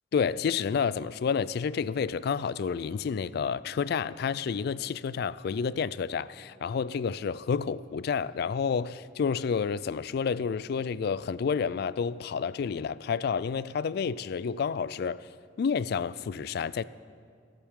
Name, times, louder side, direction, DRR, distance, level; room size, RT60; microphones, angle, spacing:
voice 1, 0.1-15.2 15.6-16.8, left 6 dB, 55° left, 18 dB, 0.3 m, -30 dB
25.5 x 9.2 x 3.7 m, 2.2 s
head